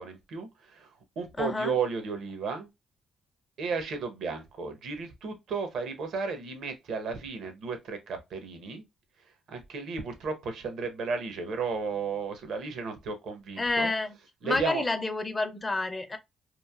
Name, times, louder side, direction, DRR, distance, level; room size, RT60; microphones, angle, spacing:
voice 1, 0.0-2.7 3.6-8.8 9.5-13.9 14.4-14.8, right 5 dB, 70° right, 0.8 m, -34 dB
voice 2, 1.4-1.7 13.6-14.2 14.4-16.2, left 2 dB, 20° left, 0.5 m, -29 dB
3.1 x 2.5 x 2.3 m
cardioid pair, 90°, 0 cm